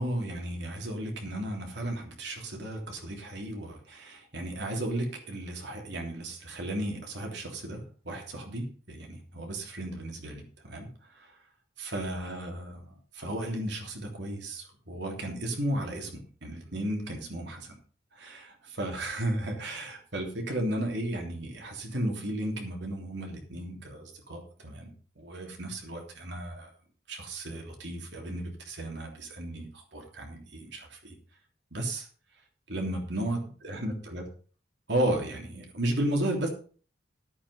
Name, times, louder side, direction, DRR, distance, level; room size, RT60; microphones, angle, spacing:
voice 1, 0.0-11.4 11.8-17.8 18.1-26.7 27.1-31.1 31.7-32.1 32.7-34.2 34.9-36.5, right 1 dB, 60° right, 1 dB, 3.3 m, -34 dB
11.5 x 8.5 x 5.5 m, 0.41 s
head